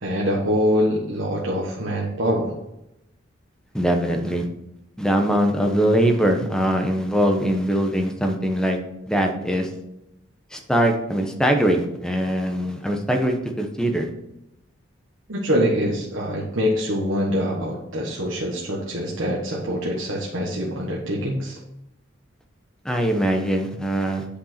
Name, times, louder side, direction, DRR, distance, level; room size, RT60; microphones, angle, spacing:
voice 1, 0.0-2.5 15.3-21.6, equal, 75° right, -4 dB, 1.4 m, -24 dB
voice 2, 3.7-4.5 5.0-8.8 9.1-9.7 10.5-14.1 22.8-24.2, right 1 dB, 5° left, 3 dB, 1.0 m, -22 dB
8.6 x 5.2 x 4.4 m, 0.85 s
head